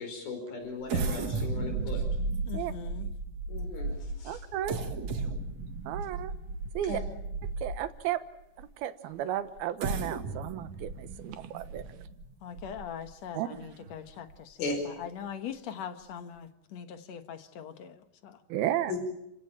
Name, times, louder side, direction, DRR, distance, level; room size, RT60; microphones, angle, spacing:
voice 1, 0.0-2.0 3.5-4.4 6.9-7.0 14.6-14.9 18.9-19.0, left 3 dB, 80° left, 4 dB, 6.8 m, -37 dB
sound 1, 0.9-8.0 8.6-8.7 9.6-13.1 13.6-13.7 14.1-14.3, right 3 dB, 50° right, 2.8 m, -34 dB
voice 2, 2.5-3.1 12.4-18.4, left 8 dB, 60° left, 8 dB, 2.1 m, -42 dB
voice 3, 4.2-4.8 5.9-6.3 6.7-7.0 7.6-8.2 8.6-11.9 13.3-13.7 18.5-18.9, right 12 dB, 85° right, 11 dB, 3.1 m, -33 dB
30.0 x 16.5 x 8.9 m, 0.83 s
omnidirectional pair, 4.3 m